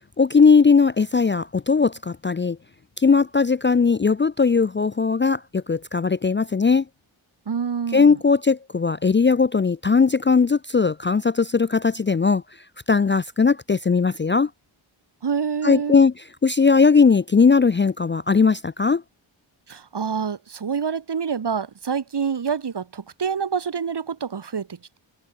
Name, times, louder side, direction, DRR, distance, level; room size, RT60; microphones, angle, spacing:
voice 1, 0.2-2.6 3.0-6.8 7.9-12.4 12.9-14.5 15.6-16.1 16.4-19.0, left 5 dB, 25° left, 0.5 m, -18 dB
voice 2, 7.5-8.2 15.2-16.0 19.7-25.0, right 6 dB, 55° right, 2.3 m, -27 dB
wide cardioid pair, 105°, 48 cm